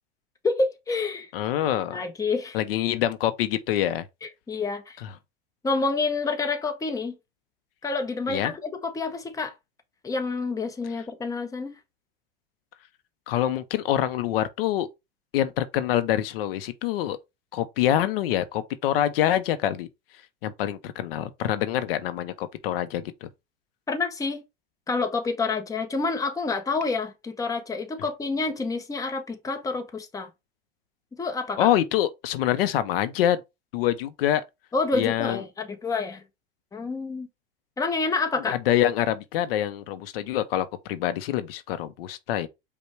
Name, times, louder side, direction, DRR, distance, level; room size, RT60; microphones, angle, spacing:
voice 1, 0.4-1.3 1.7-2.6 4.2-5.0 5.6-7.2 7.8-9.5 10.0-11.7 23.9-24.4 24.9-30.3 31.1-31.7 34.7-36.2 36.7-37.3 37.8-38.6, left 3 dB, 10° left, 0.8 m, -28 dB
voice 2, 1.3-2.0 2.5-4.0 5.0-5.1 8.3-8.5 13.3-14.9 15.3-17.2 17.5-19.9 20.4-23.3 31.6-33.4 33.7-34.4 34.9-35.4 38.5-42.5, left 12 dB, 70° left, 0.6 m, -25 dB
5.2 x 2.3 x 4.5 m
hypercardioid pair, 100°, 30 cm